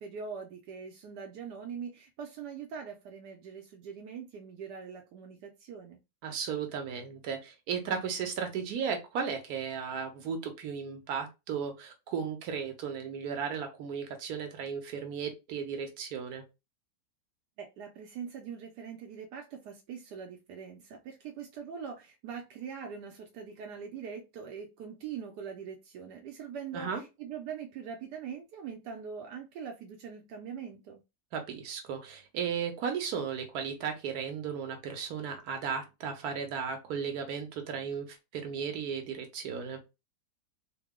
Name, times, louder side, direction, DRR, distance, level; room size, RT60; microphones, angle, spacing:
voice 1, 0.0-6.0 17.6-31.0, right 7 dB, 85° right, 3 dB, 1.2 m, -42 dB
voice 2, 6.2-16.4 26.7-27.0 31.3-39.8, right 6 dB, 70° right, 5 dB, 1.3 m, -35 dB
3.7 x 2.0 x 3.6 m, 0.25 s
omnidirectional pair, 1.7 m